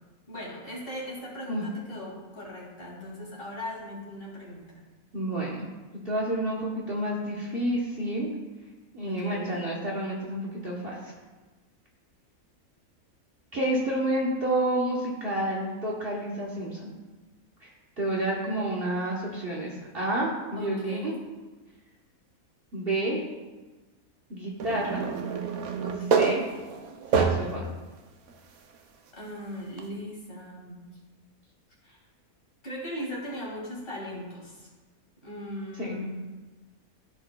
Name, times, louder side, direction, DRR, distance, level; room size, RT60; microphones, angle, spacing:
voice 1, 0.3-4.8 9.1-9.6 20.6-21.2 25.8-26.5 29.1-30.8 31.8-32.0 32.6-34.7 35.2-36.1, left 1 dB, 40° left, -5 dB, 2.6 m, -39 dB
voice 2, 5.1-5.7 6.0-8.3 8.9-10.7 11.0-11.1 13.5-16.9 17.6-17.7 18.0-21.1 22.7-23.2 24.3-25.0 26.1-26.4 27.1-27.7 35.8-35.9, right 1 dB, 45° right, -5 dB, 1.3 m, -29 dB
sound 1, 24.6-27.7 28.3-28.4 29.8-29.9, right 6 dB, 75° right, 1.2 m, -27 dB
14.0 x 4.9 x 2.3 m, 1.2 s
omnidirectional pair, 1.5 m